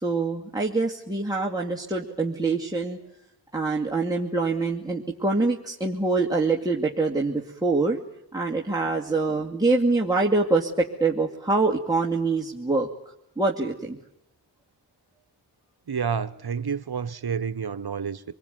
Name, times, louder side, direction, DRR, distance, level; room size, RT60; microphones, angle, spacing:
voice 1, 0.0-3.0 3.5-8.0 8.3-12.9 13.4-14.0, right 3 dB, 10° right, 2.5 m, -25 dB
voice 2, 15.9-18.2, right 6 dB, 55° right, 1.2 m, -29 dB
27.0 x 20.5 x 9.4 m
wide cardioid pair, 65°, 44 cm